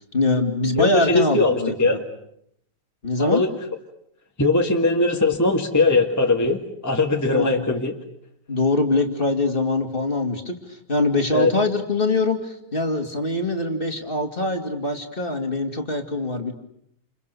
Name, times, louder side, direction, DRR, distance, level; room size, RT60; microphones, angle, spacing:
voice 1, 0.1-2.0 3.0-3.4 7.3-7.6 8.5-16.5, left 2 dB, 30° left, 4 dB, 2.9 m, -23 dB
voice 2, 0.8-2.0 3.2-3.5 4.4-7.9 11.3-11.5, left 3 dB, 10° left, 1 dB, 1.9 m, -20 dB
29.0 x 29.0 x 6.9 m, 0.73 s
omnidirectional pair, 1.9 m